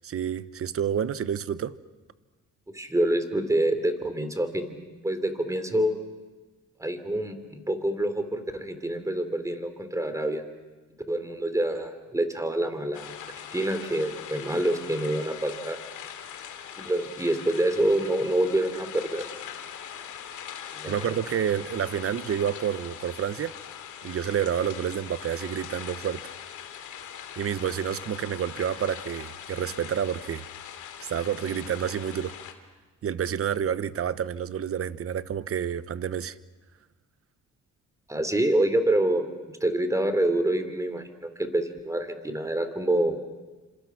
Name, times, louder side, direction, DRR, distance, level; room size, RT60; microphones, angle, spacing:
voice 1, 0.0-1.8 20.8-23.5 24.0-26.2 27.4-30.4 31.0-32.3 33.0-36.4, right 9 dB, 50° right, 1.0 m, -29 dB
voice 2, 2.7-4.7 5.0-6.0 6.8-10.4 11.1-13.2 13.5-15.8 16.7-19.2 20.7-21.2 38.1-39.3 39.6-43.2, right 1 dB, 10° right, 3.2 m, -26 dB
sound 1, 12.9-32.5, left 9 dB, 80° left, 2.4 m, -41 dB
30.0 x 26.5 x 5.9 m
cardioid pair, 90°, 30 cm